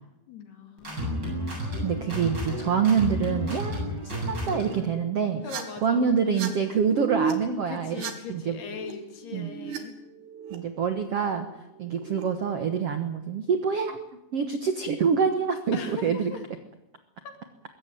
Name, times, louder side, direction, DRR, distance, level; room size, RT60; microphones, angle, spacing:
voice 1, 0.0-1.5 5.4-6.3 7.7-10.0 15.7-16.4 17.2-17.4, left 5 dB, 70° left, 5 dB, 4.6 m, -41 dB
sound 1, 0.8-4.9, equal, 25° right, 8.4 m, -31 dB
voice 2, 1.8-5.4 5.8-8.0 8.3-8.6 9.3-9.5 10.5-11.5 11.8-14.0 14.3-16.3, right 6 dB, 70° right, 7 dB, 1.4 m, -26 dB
sound 2, 4.4-4.7 5.3-5.6 6.2-6.5 6.7-7.3 7.8-8.9 9.2-9.8 10.1-10.6 11.6-12.2, right 6 dB, 85° right, 4.2 m, -35 dB
22.0 x 17.0 x 9.3 m, 0.90 s
omnidirectional pair, 4.8 m